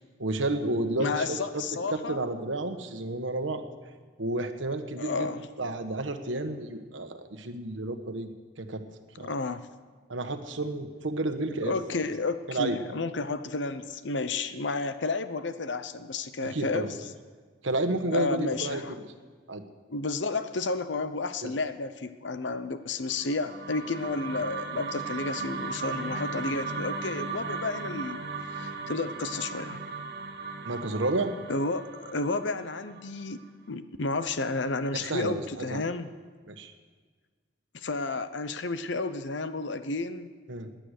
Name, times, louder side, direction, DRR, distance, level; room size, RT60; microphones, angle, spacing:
voice 1, 0.2-1.6 1.9-3.6 4.2-5.3 5.6-8.3 8.6-8.8 9.2-9.3 10.1-11.8 12.5-12.8 16.4-16.9 17.6-19.1 19.5-19.6 21.4-21.5 30.6-31.3 34.9-35.8 36.5-36.7 40.5-40.7, right 2 dB, 90° right, 7 dB, 1.3 m, -31 dB
voice 2, 1.0-2.2 5.0-5.4 9.2-9.7 11.6-16.9 18.1-18.9 19.9-28.2 28.5-29.8 31.5-33.4 33.7-36.1 37.7-40.3, left 3 dB, 75° left, 11 dB, 0.8 m, -31 dB
sound 1, 23.1-33.4, right 4 dB, 55° right, 1.3 m, -37 dB
18.0 x 10.5 x 6.6 m, 1.5 s
head